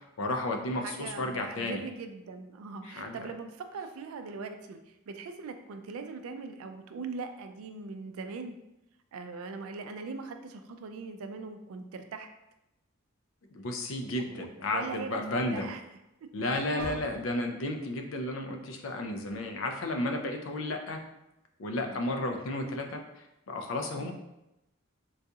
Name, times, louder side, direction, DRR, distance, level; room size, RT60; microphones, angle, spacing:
voice 1, 0.2-1.8 2.8-3.2 13.5-15.7 16.3-21.0 21.6-24.1, left 1 dB, 65° left, 4 dB, 0.4 m, -33 dB
voice 2, 0.7-8.6 9.1-12.3 14.1-15.2 15.5-15.8 16.7-17.1 21.8-22.0 23.9-24.1, right 4 dB, 85° right, 7 dB, 0.4 m, -41 dB
sound 1, 15.9-18.0 18.4-18.7 19.3-19.5, left 1 dB, 25° left, 0.9 m, -50 dB
3.9 x 2.3 x 2.7 m, 0.90 s
head